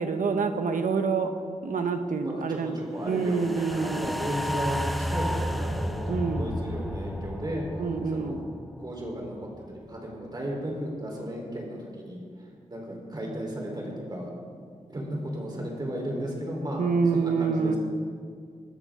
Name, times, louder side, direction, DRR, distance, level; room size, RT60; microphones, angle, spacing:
voice 1, 0.0-1.3 1.6-2.8 3.0-4.1 6.1-6.5 7.8-8.4 16.8-17.7, right 5 dB, 85° right, 7 dB, 1.1 m, -27 dB
voice 2, 2.2-7.7 8.1-8.4 8.8-14.3 14.9-16.8 17.1-17.8, equal, 30° right, -1 dB, 4.0 m, -34 dB
sound 1, 3.2-9.6 10.0-10.1, equal, ahead, 0.7 m, -32 dB
21.0 x 13.5 x 3.8 m, 2.1 s
wide cardioid pair, 115°, 13 cm